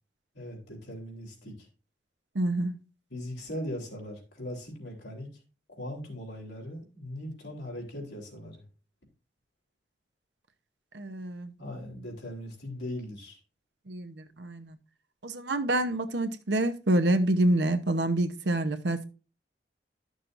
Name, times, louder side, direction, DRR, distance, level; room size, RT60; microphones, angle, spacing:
voice 1, 0.3-1.5 3.1-5.3 5.7-8.6 11.6-13.4, left 1 dB, 80° left, 3.3 m, -39 dB
voice 2, 2.3-2.7 10.9-11.5 13.9-14.8 15.2-19.1, right 1 dB, 85° right, 0.9 m, -27 dB
12.0 x 6.5 x 2.6 m
head